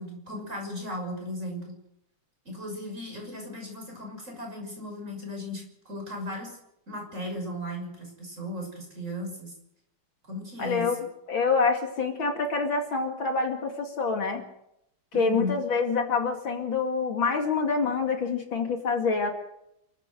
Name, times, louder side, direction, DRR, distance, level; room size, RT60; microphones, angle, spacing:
voice 1, 0.0-1.8 2.4-6.5 6.9-9.5 10.3-11.0 15.1-15.5, left 1 dB, 30° right, 1 dB, 6.6 m, -36 dB
voice 2, 10.6-11.0 11.3-14.4 15.1-19.3, left 4 dB, 60° left, 4 dB, 3.0 m, -26 dB
27.5 x 13.5 x 7.8 m, 0.81 s
omnidirectional pair, 2.4 m